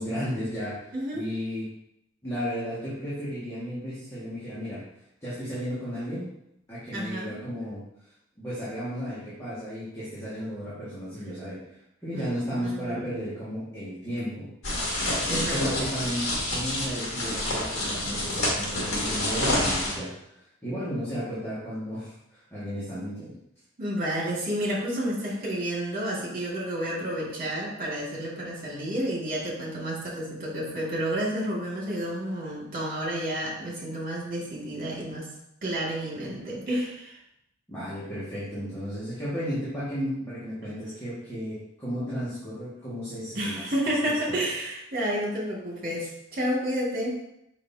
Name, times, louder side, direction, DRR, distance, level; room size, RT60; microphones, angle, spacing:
voice 1, 0.0-0.8 1.1-1.7 2.2-4.8 5.2-6.3 6.7-7.8 8.4-11.6 12.0-14.5 15.5-16.3 16.5-22.1 22.5-23.3 37.7-43.7, equal, 15° left, -12 dB, 1.9 m, -33 dB
voice 2, 0.9-1.3 6.9-7.4 12.1-13.1 15.3-15.8 23.8-35.3 35.6-37.2 43.4-47.2, right 1 dB, 45° right, -4 dB, 2.2 m, -30 dB
sound 1, 14.6-19.9, left 1 dB, 90° left, 2.0 m, -28 dB
6.6 x 5.5 x 2.8 m, 0.81 s
head